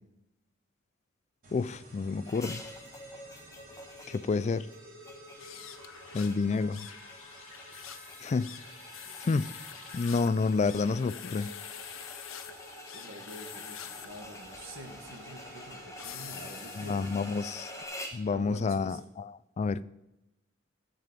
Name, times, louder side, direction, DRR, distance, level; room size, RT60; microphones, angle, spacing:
sound 1, 1.4-17.8, right 1 dB, 50° right, 3.3 m, -51 dB
voice 1, 1.5-2.6 4.1-4.7 6.1-6.9 8.2-8.5 9.3-9.5 9.9-11.5 16.8-17.7 18.1-19.2 19.6-19.9, left 4 dB, 35° left, 0.3 m, -29 dB
sound 2, 2.2-18.3, left 1 dB, 15° left, 1.3 m, -48 dB
sound 3, 5.3-17.8, left 10 dB, 90° left, 0.9 m, -47 dB
voice 2, 12.9-17.4 18.2-19.0, right 1 dB, 90° right, 2.1 m, -47 dB
14.5 x 7.6 x 5.3 m
head